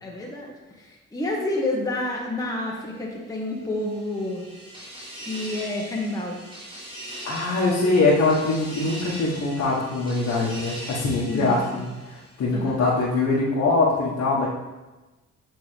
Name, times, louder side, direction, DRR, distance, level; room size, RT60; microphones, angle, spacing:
voice 1, 0.0-4.4 5.2-6.4 11.2-11.8 12.5-12.8, left 2 dB, 10° left, -2 dB, 1.1 m, -29 dB
sound 1, 3.5-12.6, equal, 15° right, 2.1 m, -40 dB
voice 2, 7.2-14.5, left 3 dB, 60° left, -7 dB, 1.3 m, -23 dB
7.7 x 3.8 x 3.3 m, 1.1 s
cardioid pair, 90°, 30 cm